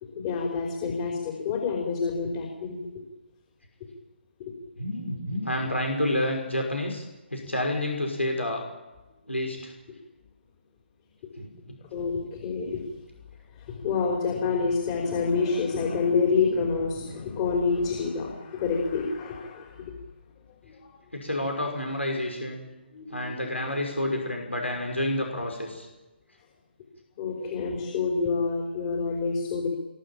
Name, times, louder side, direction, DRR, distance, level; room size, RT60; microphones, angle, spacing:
voice 1, 0.2-2.8 11.9-12.8 13.6-19.9 20.6-20.9 22.9-23.2 27.2-29.7, left 4 dB, 30° left, 0 dB, 5.2 m, -27 dB
voice 2, 4.8-7.0 7.3-8.6 9.3-9.7 11.4-11.5 21.1-22.7 23.1-25.9, left 1 dB, 85° left, 2 dB, 6.2 m, -29 dB
26.5 x 22.5 x 9.0 m, 1.1 s
figure-of-eight pair, 140°, 6 cm